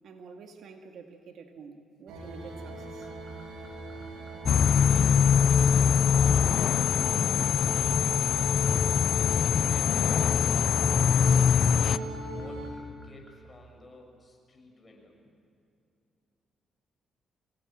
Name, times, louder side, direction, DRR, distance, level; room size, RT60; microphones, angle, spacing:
voice 1, 0.0-3.1, right 5 dB, 65° right, 4 dB, 2.2 m, -48 dB
sound 1, 2.1-12.7, right 1 dB, 85° right, 6.6 m, -39 dB
sound 2, 2.8-13.3, left 1 dB, 5° right, 6.5 m, -55 dB
sound 3, 4.5-12.0, left 7 dB, 55° left, 0.6 m, -23 dB
voice 2, 4.8-10.2 10.4-10.7 11.1-15.2, left 2 dB, 25° left, 2 dB, 7.2 m, -50 dB
25.5 x 20.0 x 9.0 m, 2.5 s
cardioid pair, 90°, 0 cm